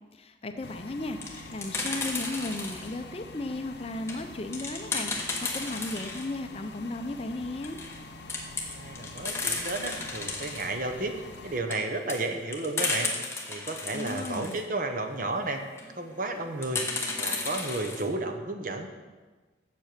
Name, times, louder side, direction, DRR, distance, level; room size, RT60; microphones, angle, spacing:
voice 1, 0.1-7.8 13.9-14.6, left 2 dB, 30° left, 7 dB, 0.5 m, -35 dB
sound 1, 0.6-11.6, left 2 dB, 65° left, 0.8 m, -46 dB
sound 2, 0.9-3.0 3.5-6.3 6.7-6.8 7.0-7.1 7.5-8.0 8.3-10.7 11.3-14.6 15.6-15.9 16.6-18.0, left 3 dB, 15° left, 1.1 m, -34 dB
voice 2, 8.7-11.1 11.4-13.1 13.5-15.6 16.0-16.8 17.2-18.9, right 2 dB, 45° right, 6 dB, 0.9 m, -32 dB
7.7 x 7.6 x 6.6 m, 1.3 s
head